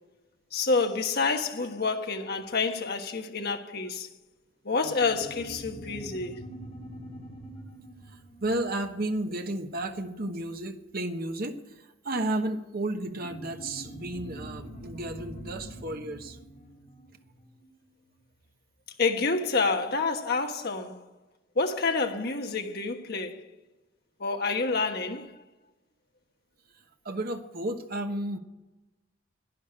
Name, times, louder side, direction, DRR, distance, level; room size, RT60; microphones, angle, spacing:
voice 1, 0.5-4.1 4.6-6.4 19.0-21.0 21.5-23.4 24.2-25.3, left 4 dB, 50° left, 1.4 m, -28 dB
sound 1, 4.8-9.8 13.1-18.1, right 1 dB, 35° left, 2.5 m, -45 dB
voice 2, 8.1-16.4 26.7-28.4, right 1 dB, 50° right, 1.2 m, -33 dB
11.5 x 10.5 x 8.9 m
head